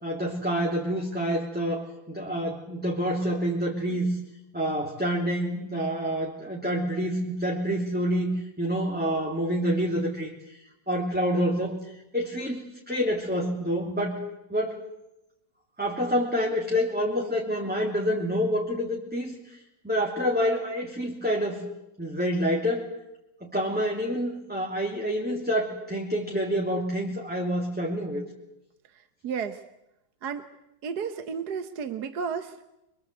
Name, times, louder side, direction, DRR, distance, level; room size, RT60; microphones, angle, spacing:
voice 1, 0.0-4.2 4.5-10.6 10.9-14.2 14.5-14.9 15.8-19.6 19.8-21.7 22.0-22.9 23.4-28.2, equal, 5° right, -1 dB, 3.0 m, -27 dB
voice 2, 28.9-29.6 30.2-30.5 30.8-32.6, right 6 dB, 60° right, 9 dB, 1.6 m, -33 dB
25.0 x 24.0 x 8.1 m, 0.90 s
omnidirectional pair, 2.0 m